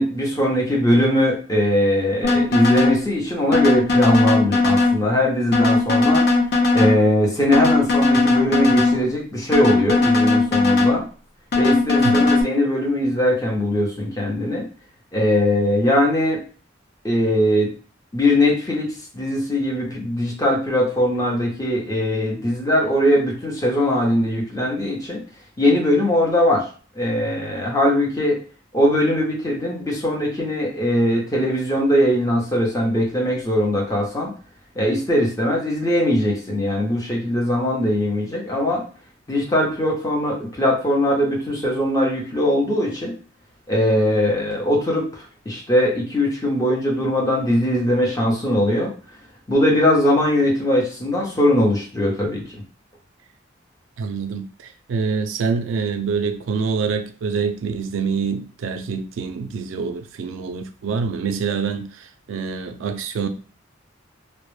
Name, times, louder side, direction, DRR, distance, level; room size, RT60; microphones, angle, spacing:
voice 1, 0.0-6.2 6.7-11.0 11.6-14.6 15.1-16.4 17.0-17.7 18.1-25.2 25.6-26.7 27.0-28.4 28.7-34.3 34.8-38.8 39.3-43.1 43.7-45.1 45.5-48.9 49.5-52.4, left 1 dB, 20° left, 0.6 m, -20 dB
sound 1, 2.2-3.0 3.5-5.0 5.5-7.0 7.5-9.0 9.5-11.0 11.5-12.4, left 3 dB, 55° left, 0.5 m, -18 dB
voice 2, 54.0-54.5 54.9-63.3, right 5 dB, 90° right, 0.3 m, -26 dB
2.1 x 2.0 x 3.1 m
head